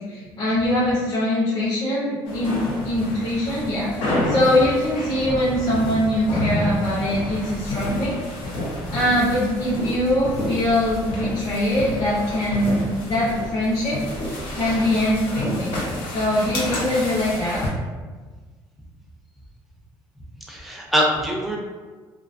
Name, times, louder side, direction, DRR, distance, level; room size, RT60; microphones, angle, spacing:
voice 1, 0.0-2.6 2.8-8.2 8.9-14.0 14.5-15.8 16.1-17.6, left 1 dB, 35° left, -11 dB, 0.6 m, -22 dB
sound 1, 2.3-17.7, left 1 dB, 85° left, 0.7 m, -29 dB
voice 2, 20.5-21.6, equal, ahead, -2 dB, 0.4 m, -23 dB
2.3 x 2.2 x 2.5 m, 1.4 s
cardioid pair, 155°, 9 cm